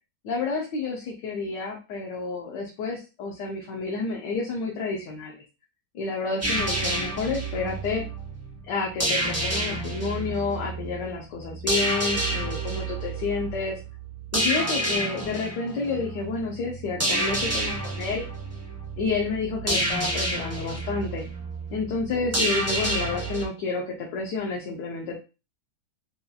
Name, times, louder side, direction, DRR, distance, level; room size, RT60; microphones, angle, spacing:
voice 1, 0.2-5.4 5.9-8.0 8.7-13.8 14.3-18.2 19.0-21.2 21.7-25.2, left 4 dB, 70° left, -1 dB, 1.4 m, -30 dB
sound 1, 6.4-23.4, right 1 dB, 20° right, 0.4 m, -29 dB
5.5 x 2.6 x 2.3 m, 0.30 s
omnidirectional pair, 2.0 m